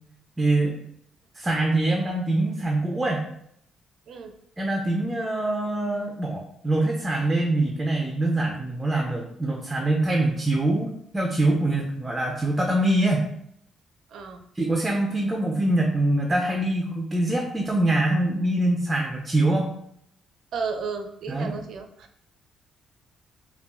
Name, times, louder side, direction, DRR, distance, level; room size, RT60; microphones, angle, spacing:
voice 1, 0.4-0.8 1.3-3.3 4.6-13.3 14.6-19.7 21.3-21.6, right 1 dB, 15° right, 1 dB, 0.5 m, -24 dB
voice 2, 14.1-14.4 20.5-22.2, right 5 dB, 65° right, 5 dB, 0.5 m, -33 dB
5.4 x 2.3 x 2.3 m, 0.69 s
cardioid pair, 135°, 0 cm